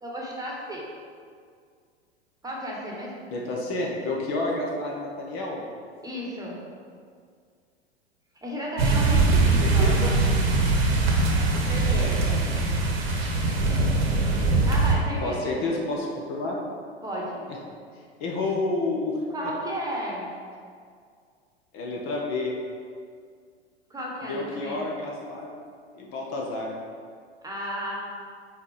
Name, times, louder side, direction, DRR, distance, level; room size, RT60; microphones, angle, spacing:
voice 1, 0.0-0.8 2.4-3.1 6.0-6.6 8.4-10.2 11.7-12.4 14.6-15.9 17.0-17.4 19.3-20.3 23.9-24.9 27.4-28.0, equal, 10° right, -3 dB, 1.3 m, -33 dB
voice 2, 3.3-5.6 9.6-10.2 11.8-12.5 15.2-16.5 18.2-19.2 21.7-22.6 24.2-25.5 25.9-26.8, left 2 dB, 40° left, -2 dB, 1.0 m, -30 dB
sound 1, 8.8-14.9, right 3 dB, 65° right, 1.2 m, -22 dB
5.0 x 4.1 x 4.8 m, 2.1 s
figure-of-eight pair, 90°, 33 cm